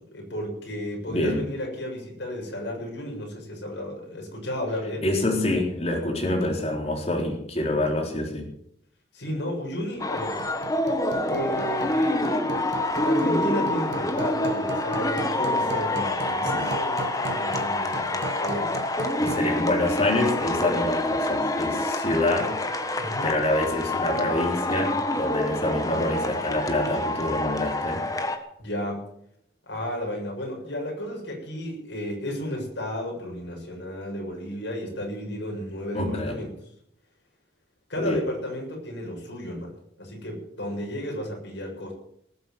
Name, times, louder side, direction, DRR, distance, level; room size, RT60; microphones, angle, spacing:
voice 1, 0.1-5.1 9.1-10.4 11.3-12.2 12.9-18.8 23.0-23.3 28.6-29.1 29.7-36.5 37.9-39.7 40.0-41.9, left 1 dB, 80° left, 0 dB, 7.1 m, -33 dB
voice 2, 1.1-1.4 5.0-8.4 16.4-16.7 19.2-22.6 23.2-28.0 35.9-36.4 38.0-38.2, left 1 dB, 35° left, 1 dB, 3.8 m, -26 dB
Hammer, 9.9-19.6, right 3 dB, 70° right, 1.2 m, -36 dB
sound 1, 10.0-28.4, left 1 dB, 20° left, 1.4 m, -27 dB
19.0 x 8.0 x 7.8 m, 0.70 s
head